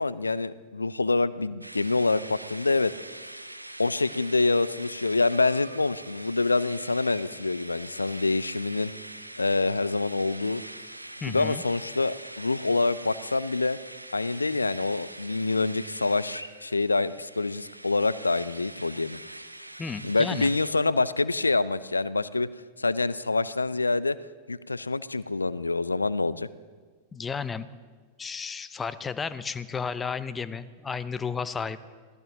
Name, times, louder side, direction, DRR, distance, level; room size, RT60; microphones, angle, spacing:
voice 1, 0.0-2.9 3.8-8.9 9.4-10.6 11.3-13.8 14.1-19.2 20.0-22.5 22.8-24.2 24.5-26.5, left 3 dB, 80° left, 18 dB, 0.4 m, -26 dB
sound 1, 1.6-20.7, right 1 dB, 85° right, 0.7 m, -43 dB
voice 2, 11.2-11.6 19.8-20.5 27.1-27.7 28.2-31.8, left 5 dB, 15° left, 15 dB, 0.7 m, -33 dB
25.5 x 17.0 x 2.9 m, 1.5 s
figure-of-eight pair, 90°, 0 cm